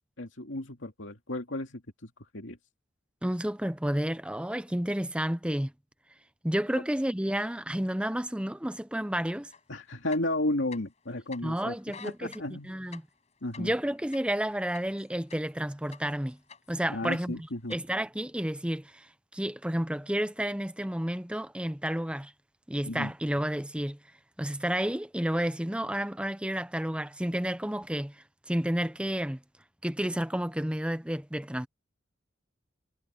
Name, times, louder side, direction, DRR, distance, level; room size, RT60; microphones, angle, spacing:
voice 1, 0.2-2.6 9.7-12.8 13.4-13.7 16.9-17.8 22.8-23.1, left 1 dB, 75° left, 2.5 m, -34 dB
voice 2, 3.2-5.7 6.4-9.5 11.4-12.3 12.6-13.0 13.6-16.4 16.7-22.3 22.7-24.0 24.4-28.2 28.5-29.4 29.8-31.7, equal, 5° right, 0.7 m, -31 dB
sound 1, 9.5-9.6 10.0-11.0 11.3-11.4 11.8-15.6 15.9-16.8 17.1-17.8, left 6 dB, 35° left, 7.2 m, -49 dB
head